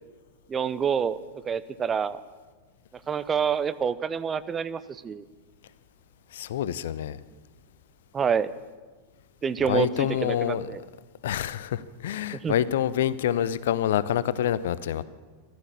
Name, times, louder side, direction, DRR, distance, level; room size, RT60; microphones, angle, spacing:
voice 1, 0.5-1.2 1.5-2.2 3.1-5.2 8.1-8.5 9.4-10.8 12.3-12.5, right 7 dB, 20° right, 15 dB, 0.5 m, -27 dB
voice 2, 6.3-7.2 9.7-10.8 11.2-15.0, left 10 dB, 60° left, 17 dB, 0.5 m, -27 dB
13.5 x 12.0 x 7.2 m, 1.4 s
figure-of-eight pair, 90°, 0 cm